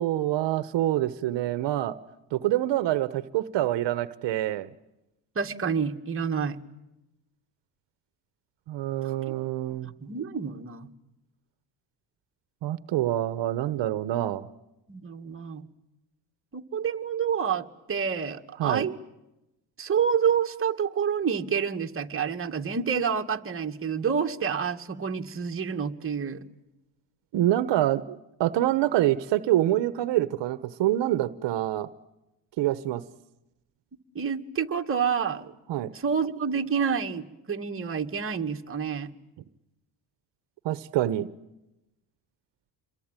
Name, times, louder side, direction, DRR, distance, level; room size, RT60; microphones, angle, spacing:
voice 1, 0.0-1.9 2.3-4.7 8.7-9.9 12.6-14.5 18.6-18.8 27.3-31.9 32.6-33.0 35.7-35.9 40.6-41.3, right 13 dB, 70° right, 14 dB, 1.2 m, -26 dB
voice 2, 5.4-6.6 9.0-9.2 9.8-10.9 14.9-15.7 16.5-19.0 19.8-26.4 34.2-35.5 35.9-39.1, right 7 dB, 30° right, 4 dB, 2.1 m, -28 dB
28.0 x 22.5 x 9.0 m, 0.92 s
cardioid pair, 110°, 44 cm